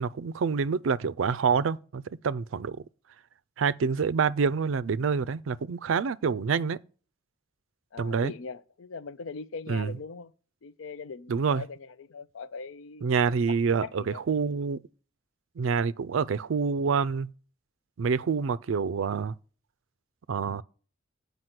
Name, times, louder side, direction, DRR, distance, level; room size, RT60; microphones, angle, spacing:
voice 1, 0.0-2.8 3.6-6.8 8.0-8.3 9.7-9.9 11.3-11.6 13.0-14.8 15.6-17.3 18.0-19.4 20.3-20.6, right 5 dB, 80° right, 0.4 m, -27 dB
voice 2, 7.9-10.3 10.6-13.0 13.7-14.2, left 4 dB, 80° left, 0.5 m, -41 dB
7.9 x 5.3 x 5.9 m
head